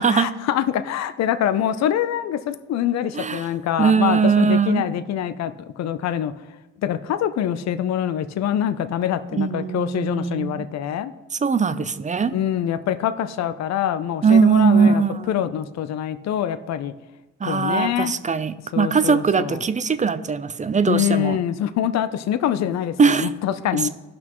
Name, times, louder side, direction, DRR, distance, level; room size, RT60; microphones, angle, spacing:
voice 1, 0.0-6.3 6.8-11.1 12.3-15.0 15.3-16.9 17.4-18.1 18.7-19.6 20.9-23.9, left 10 dB, 60° left, 12 dB, 0.6 m, -25 dB
voice 2, 3.1-3.5 3.8-4.8 9.3-10.7 11.3-12.3 14.2-15.3 17.4-21.4 23.0-23.3 23.7-23.9, right 5 dB, 25° right, 13 dB, 0.5 m, -20 dB
16.5 x 6.1 x 3.0 m, 1.1 s
cardioid pair, 90°, 30 cm